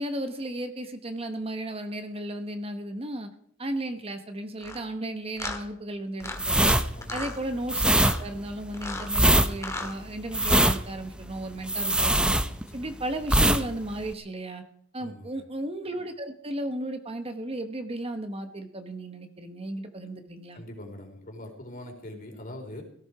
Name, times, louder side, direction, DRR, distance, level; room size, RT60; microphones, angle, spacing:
voice 1, 0.0-3.3 3.6-6.8 7.1-7.9 8.2-12.4 12.7-14.6 14.9-20.6, right 1 dB, 30° right, 7 dB, 1.1 m, -34 dB
sound 1, 4.6-4.8 5.4-5.6 6.2-6.7 7.0-7.4 7.9-8.2 8.7-9.1 9.5-9.9 10.4-10.8, left 2 dB, 15° left, 1.9 m, -35 dB
sound 2, 6.3-12.9 13.2-13.6 13.9-14.1, right 1 dB, 5° right, 0.7 m, -22 dB
voice 2, 6.9-7.3 12.7-12.9 15.0-15.4 20.5-22.8, left 1 dB, 45° left, 3 dB, 3.8 m, -42 dB
17.5 x 14.5 x 4.8 m, 0.65 s
head